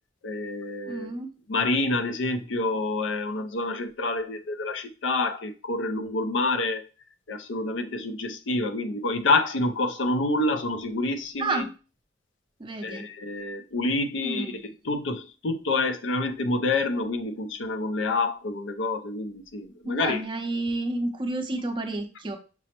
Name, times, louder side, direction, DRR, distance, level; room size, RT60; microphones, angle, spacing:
voice 1, 0.2-1.1 1.5-6.8 7.3-11.7 12.8-20.2, left 2 dB, 85° left, 0.5 m, -28 dB
voice 2, 0.9-1.3 11.4-11.7 12.6-13.1 14.2-14.6 19.8-22.4, right 2 dB, 25° right, 0.5 m, -30 dB
6.0 x 2.0 x 2.9 m
head